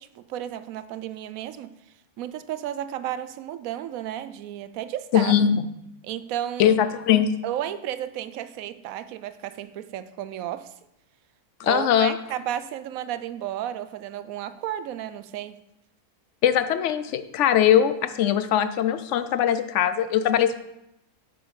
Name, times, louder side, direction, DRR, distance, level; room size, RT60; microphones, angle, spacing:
voice 1, 0.0-1.7 2.2-5.4 6.0-6.7 7.4-10.7 11.6-15.6, right 11 dB, 70° right, 1.0 m, -33 dB
voice 2, 5.1-5.7 6.6-7.3 11.6-12.1 16.4-20.6, left 9 dB, 60° left, 0.8 m, -21 dB
7.8 x 7.1 x 5.4 m
omnidirectional pair, 1.6 m